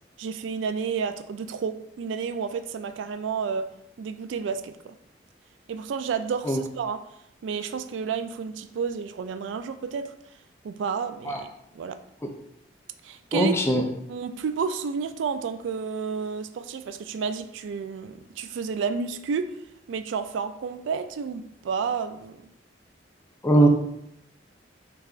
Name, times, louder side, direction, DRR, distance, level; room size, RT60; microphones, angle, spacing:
voice 1, 0.2-3.7 4.0-5.0 5.7-7.0 7.4-10.1 10.6-12.0 13.0-19.5 19.9-22.5, right 5 dB, 85° right, 10 dB, 0.3 m, -31 dB
voice 2, 13.3-13.8 23.4-23.7, right 1 dB, 15° left, 2 dB, 0.4 m, -20 dB
6.4 x 2.3 x 2.4 m, 0.77 s
head